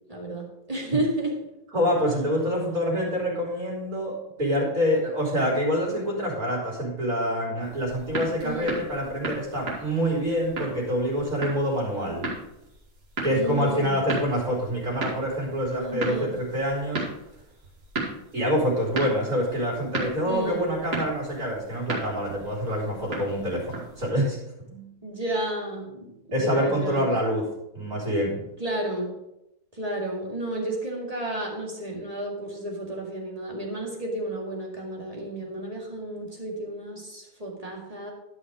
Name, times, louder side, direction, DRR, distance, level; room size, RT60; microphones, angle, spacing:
voice 1, 0.1-1.4 8.4-8.8 13.3-14.0 15.8-16.4 20.2-20.7 24.7-27.1 28.6-29.2 29.8-38.1, right 1 dB, 25° right, -1 dB, 2.1 m, -32 dB
voice 2, 1.7-12.3 13.2-17.0 18.3-24.4 26.3-27.5 27.7-28.4, equal, 60° right, -9 dB, 4.1 m, -26 dB
sound 1, 7.6-24.1, right 2 dB, 80° right, 2.9 m, -36 dB
12.0 x 5.8 x 5.0 m, 0.88 s
omnidirectional pair, 1.7 m